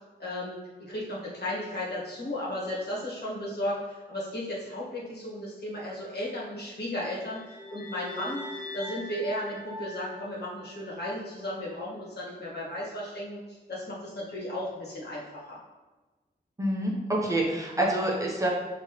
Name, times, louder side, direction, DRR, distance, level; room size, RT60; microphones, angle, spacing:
voice 1, 0.2-8.4 8.7-15.6, left 1 dB, 65° left, -6 dB, 1.4 m, -35 dB
sound 1, 7.0-11.3, left 1 dB, 50° left, 0.7 m, -42 dB
voice 2, 16.6-18.5, right 1 dB, 20° right, -3 dB, 0.8 m, -27 dB
5.3 x 2.9 x 3.0 m, 1.2 s
wide cardioid pair, 85°, 18 cm